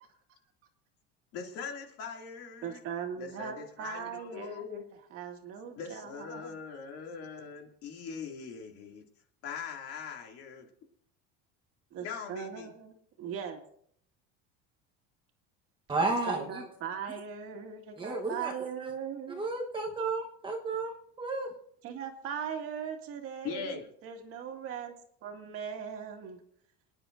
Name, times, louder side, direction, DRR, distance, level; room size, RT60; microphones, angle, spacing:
voice 1, 1.3-2.8 3.2-4.8 5.7-9.0 9.4-10.7 12.0-12.7 23.4-23.9, left 6 dB, 55° left, 2 dB, 2.5 m, -41 dB
voice 2, 2.6-4.8 5.1-6.6 11.9-12.9 13.2-13.6 16.1-19.5 21.8-24.9 25.2-26.4, right 7 dB, 50° right, 4 dB, 2.0 m, -39 dB
voice 3, 15.9-16.6 18.0-18.5 19.4-20.9 21.2-21.5, right 3 dB, 15° right, 1 dB, 1.1 m, -32 dB
28.0 x 10.0 x 2.6 m, 0.66 s
cardioid pair, 145°, 29 cm